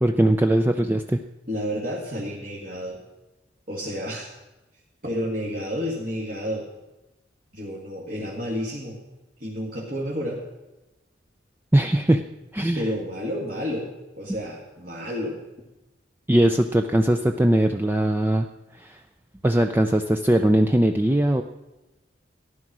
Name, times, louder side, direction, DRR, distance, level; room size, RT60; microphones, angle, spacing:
voice 1, 0.0-1.2 11.7-12.2 12.5-12.8 16.3-18.5 18.8-19.0 19.4-21.4, right 1 dB, 10° right, 5 dB, 0.5 m, -20 dB
voice 2, 1.5-3.0 3.7-4.3 5.0-6.7 7.5-9.0 9.4-10.4 12.7-13.9 14.2-15.4, equal, 50° right, -3 dB, 2.2 m, -30 dB
14.5 x 11.0 x 6.2 m, 1.0 s
head